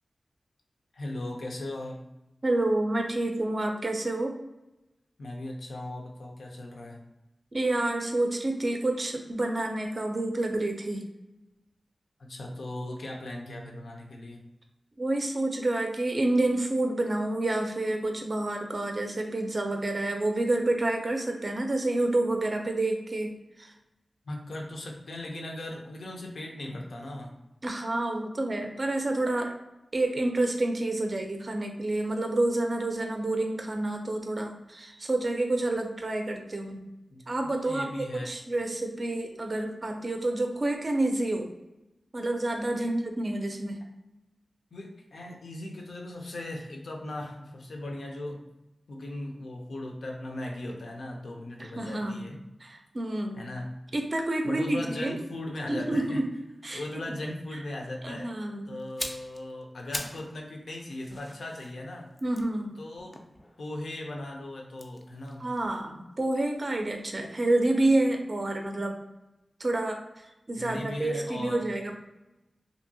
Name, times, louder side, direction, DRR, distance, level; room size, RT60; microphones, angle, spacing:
voice 1, 0.9-2.0 5.2-7.0 12.2-14.4 24.3-27.4 37.1-38.4 42.7-43.0 44.7-48.5 48.9-52.4 53.4-53.7 54.4-56.2 56.7-58.4 58.7-62.1 62.8-63.2 63.6-65.5 70.6-71.7, left 1 dB, 90° left, 1 dB, 0.5 m, -38 dB
voice 2, 2.4-4.3 7.5-11.0 15.0-23.3 23.6-23.7 27.6-29.5 29.9-36.8 37.3-41.5 42.1-43.8 51.6-52.3 52.6-53.4 53.9-55.2 55.7-56.2 56.6-56.8 58.0-58.7 62.2-62.8 65.4-69.0 69.6-70.0 70.5-71.9, right 2 dB, 45° right, 3 dB, 0.4 m, -28 dB
sound 1, 58.8-60.3 60.6-63.9 64.7-66.7 67.0-67.2, left 1 dB, 25° left, 0.3 m, -42 dB
2.7 x 2.6 x 2.6 m, 0.95 s
wide cardioid pair, 105°, 0 cm